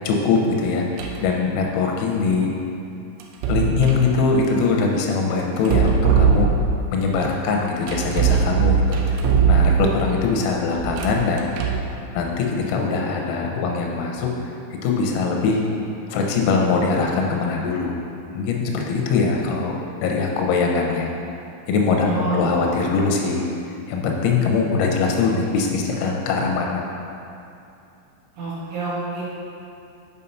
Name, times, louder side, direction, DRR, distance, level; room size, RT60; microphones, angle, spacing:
voice 1, 0.1-0.9 1.2-2.5 3.5-6.5 6.9-9.2 9.5-11.5 12.1-14.5 14.8-15.6 16.1-18.0 18.3-19.7 20.0-21.1 21.7-23.4 23.9-26.8, left 4 dB, 85° left, 0 dB, 3.7 m, -22 dB
sound 1, 1.0-1.3 3.2-4.1 5.6-6.9 7.9-10.1 10.8-11.9, right 6 dB, 85° right, 2.9 m, -20 dB
voice 2, 22.0-22.5 28.3-29.2, right 4 dB, 65° right, -8 dB, 3.4 m, -27 dB
8.4 x 5.4 x 5.6 m, 2.6 s
omnidirectional pair, 5.9 m